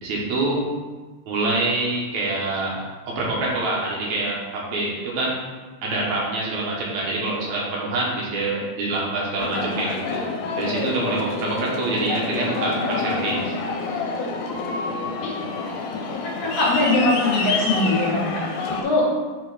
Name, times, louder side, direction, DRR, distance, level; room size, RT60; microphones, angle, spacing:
voice 1, 0.0-0.6 1.3-5.4 5.8-10.3 10.6-13.5, right 2 dB, 75° right, -4 dB, 2.7 m, -25 dB
Aircraft, 9.4-18.8, left 4 dB, 85° left, 2.3 m, -28 dB
voice 2, 15.9-18.4 18.7-19.1, left 2 dB, 65° left, -4 dB, 2.6 m, -22 dB
6.4 x 3.9 x 4.9 m, 1.3 s
omnidirectional pair, 3.3 m